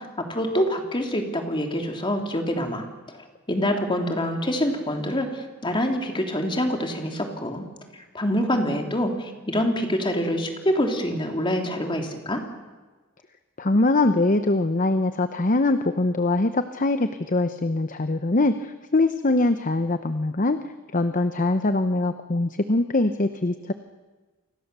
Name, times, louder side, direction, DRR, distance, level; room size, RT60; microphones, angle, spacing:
voice 1, 0.0-7.6 7.9-12.4, equal, 25° left, 3 dB, 3.1 m, -26 dB
voice 2, 13.6-20.6 20.9-23.7, left 2 dB, 40° left, 9 dB, 0.9 m, -22 dB
29.5 x 24.5 x 6.8 m, 1.3 s
head